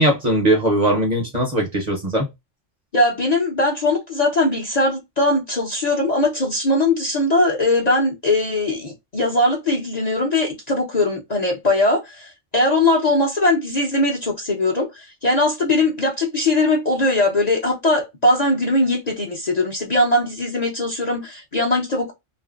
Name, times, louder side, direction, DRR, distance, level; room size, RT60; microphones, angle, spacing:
voice 1, 0.0-2.3, right 1 dB, 40° right, 0.7 m, -19 dB
voice 2, 2.9-22.1, left 2 dB, 40° left, 0.7 m, -20 dB
2.8 x 2.5 x 2.4 m
omnidirectional pair, 1.3 m